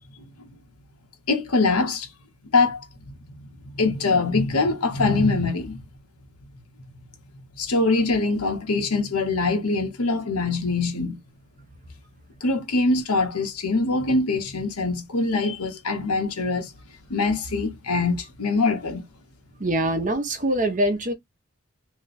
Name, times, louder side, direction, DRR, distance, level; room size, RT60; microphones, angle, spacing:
voice 1, 0.2-0.5 1.3-2.1 2.5-3.1 3.6-5.8 7.6-11.2 12.4-16.7 17.1-19.0, left 3 dB, 90° left, 1.0 m, -23 dB
voice 2, 19.6-21.1, right 1 dB, 35° right, 0.8 m, -23 dB
2.9 x 2.2 x 4.0 m
head